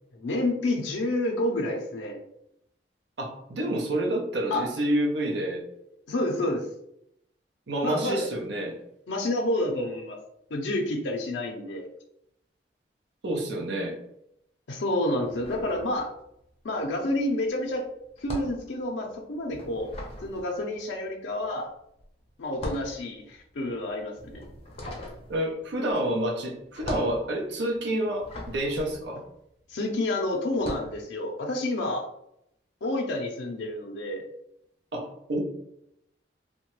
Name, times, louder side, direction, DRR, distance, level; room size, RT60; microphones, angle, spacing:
voice 1, 0.1-2.2 4.5-4.7 6.1-6.6 7.8-8.2 9.1-10.2 10.5-11.8 14.7-16.1 16.6-17.9 18.2-19.9 20.2-21.7 22.4-24.5 29.7-32.0 32.8-34.2, left 1 dB, 80° left, 2 dB, 0.5 m, -29 dB
voice 2, 3.2-5.6 7.7-8.7 13.2-14.0 25.3-29.2 34.9-35.4, right 1 dB, 70° right, 0 dB, 0.5 m, -28 dB
sound 1, 15.2-16.5 16.7-29.9 30.5-31.0, equal, 35° left, 0.6 m, -41 dB
2.9 x 2.1 x 2.9 m, 0.77 s
head